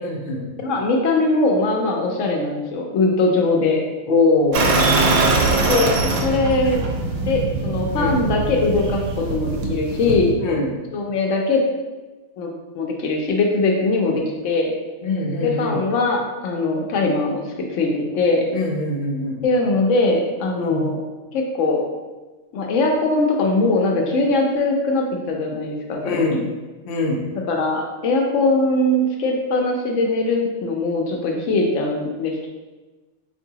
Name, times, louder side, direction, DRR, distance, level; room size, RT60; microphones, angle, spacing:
voice 1, 0.0-0.4 4.1-4.7 7.9-8.2 10.4-10.7 15.0-15.8 18.5-19.4 20.6-20.9 26.0-26.4 26.9-27.2, left 2 dB, 55° left, -1 dB, 0.7 m, -22 dB
voice 2, 0.6-3.8 5.6-5.9 6.2-6.8 7.3-10.3 10.9-11.6 12.4-12.5 12.7-14.7 15.4-18.4 19.4-21.0 21.3-21.8 22.5-26.5 27.3-32.5, left 2 dB, 80° left, 1 dB, 0.9 m, -21 dB
sound 1, 4.5-10.3, right 2 dB, 85° right, 1.0 m, -21 dB
4.5 x 2.6 x 2.8 m, 1.2 s
omnidirectional pair, 1.3 m